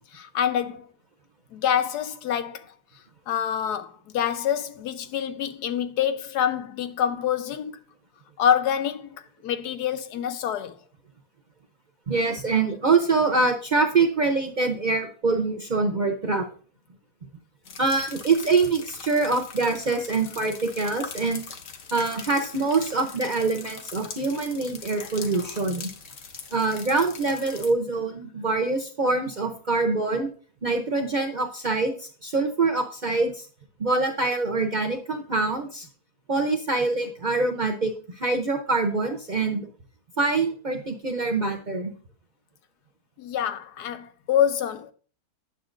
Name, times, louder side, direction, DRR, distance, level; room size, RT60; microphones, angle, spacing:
voice 1, 0.1-0.9 1.5-2.7 3.3-7.7 8.4-9.2 9.4-10.8 25.0-25.1 25.3-25.5 43.2-44.9, left 9 dB, 85° left, 1.3 m, -26 dB
voice 2, 12.1-16.5 17.8-21.4 21.9-25.9 26.5-30.3 30.6-33.5 33.8-35.9 36.3-39.7 40.2-41.9, right 3 dB, 45° right, 0.6 m, -25 dB
sound 1, 17.7-27.7, left 5 dB, 55° left, 1.1 m, -41 dB
9.3 x 6.9 x 2.5 m
omnidirectional pair, 1.7 m